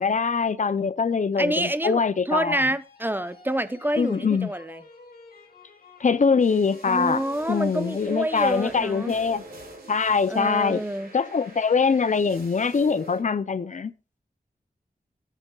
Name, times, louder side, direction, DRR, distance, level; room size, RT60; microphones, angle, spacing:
voice 1, 0.0-2.6 4.0-4.5 6.0-9.4 9.9-10.8 11.1-13.9, left 5 dB, 50° left, 0.5 m, -23 dB
voice 2, 1.4-4.8 6.9-9.1 10.3-11.1, right 1 dB, 15° right, 0.7 m, -27 dB
sound 1, 2.6-9.7, left 2 dB, 75° left, 2.2 m, -48 dB
sound 2, 6.4-13.2, right 1 dB, 85° right, 4.1 m, -46 dB
14.5 x 9.1 x 2.3 m
wide cardioid pair, 80°, 16 cm